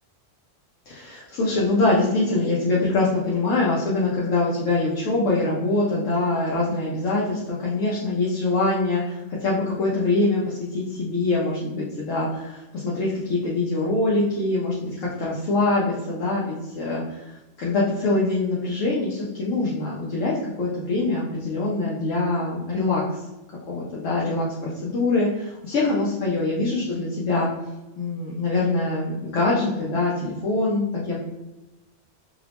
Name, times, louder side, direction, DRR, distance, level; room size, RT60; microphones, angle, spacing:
voice 1, 0.9-23.2 23.7-27.5 28.0-31.2, left 2 dB, 75° left, -4 dB, 1.0 m, -24 dB
2.8 x 2.0 x 2.8 m, 1.0 s
omnidirectional pair, 1.3 m